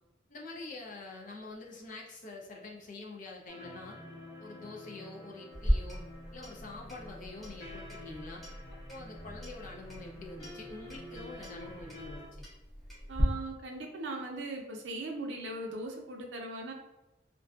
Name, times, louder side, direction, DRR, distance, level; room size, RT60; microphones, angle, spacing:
voice 1, 0.3-4.0 4.4-6.1 6.3-8.4 8.7-12.2, left 2 dB, 45° left, -1 dB, 0.5 m, -46 dB
sound 1, 3.5-12.3, left 2 dB, 85° left, 0.7 m, -49 dB
Clock, 5.5-13.2, equal, ahead, 0.7 m, -38 dB
voice 2, 13.1-16.7, right 2 dB, 75° right, 1 dB, 0.5 m, -39 dB
2.5 x 2.3 x 2.3 m, 0.94 s
head